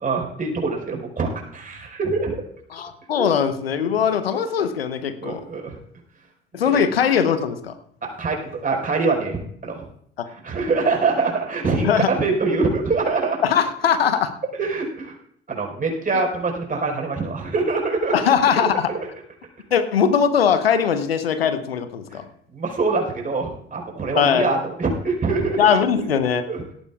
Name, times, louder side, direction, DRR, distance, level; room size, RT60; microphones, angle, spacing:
voice 1, 0.0-2.4 3.1-3.3 5.2-5.8 6.7-6.8 8.0-9.8 10.4-13.4 14.6-15.1 15.5-18.1 18.9-19.0 22.1-22.2 22.5-25.6 26.5-26.6, right 3 dB, 30° right, 0 dB, 4.8 m, -24 dB
voice 2, 2.7-5.4 6.5-7.7 10.2-10.3 11.8-12.1 13.4-14.3 18.1-18.9 19.7-22.3 24.2-24.5 25.6-26.4, left 7 dB, 85° left, 10 dB, 1.0 m, -20 dB
17.5 x 15.0 x 2.4 m, 0.64 s
figure-of-eight pair, 60°, 29 cm